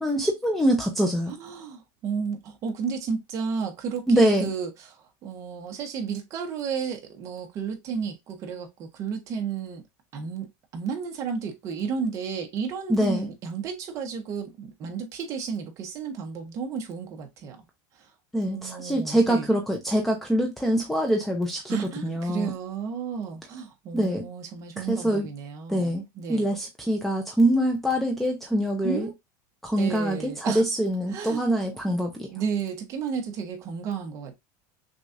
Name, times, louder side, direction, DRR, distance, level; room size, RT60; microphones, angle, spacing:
voice 1, 0.0-1.3 4.1-4.5 12.9-13.3 18.3-22.5 23.9-24.2 24.8-25.3 25.7-26.0 26.3-29.1 29.6-32.3, right 1 dB, ahead, 0.5 m, -24 dB
voice 2, 1.3-9.8 10.1-17.6 18.0-18.1 18.5-19.5 21.7-26.5 28.8-29.1 29.8-30.6 31.1-31.5 32.3-34.4, right 6 dB, 30° right, 1.0 m, -32 dB
6.1 x 2.4 x 2.6 m
supercardioid pair, 170°, 10 cm